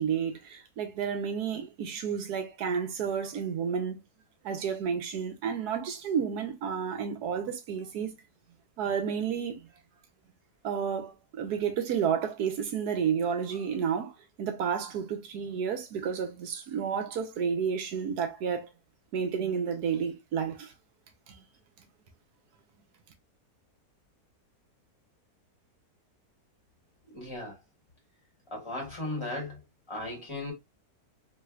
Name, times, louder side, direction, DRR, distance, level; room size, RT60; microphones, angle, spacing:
voice 1, 0.0-4.0 4.4-8.1 8.8-9.7 10.6-14.1 14.4-18.7 19.1-20.7 21.3-21.4, right 7 dB, 85° right, 1.3 m, -31 dB
voice 2, 27.1-27.6 28.5-29.6 29.9-30.5, left 2 dB, 20° left, 1.7 m, -36 dB
3.3 x 3.2 x 2.3 m
omnidirectional pair, 1.6 m